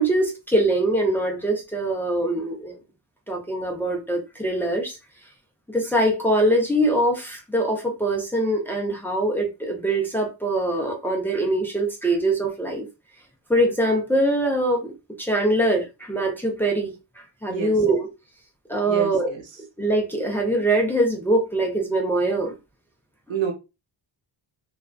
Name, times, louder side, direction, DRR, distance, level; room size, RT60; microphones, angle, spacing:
voice 1, 0.0-2.8 3.3-5.0 5.7-12.9 13.5-14.9 15.2-18.0 18.7-19.3 19.8-22.5, right 1 dB, 5° left, 0.5 m, -23 dB
voice 2, 17.5-17.8 18.9-19.5 23.3-23.5, right 7 dB, 85° right, 0.9 m, -28 dB
2.4 x 2.2 x 2.2 m
cardioid pair, 110°, 45 cm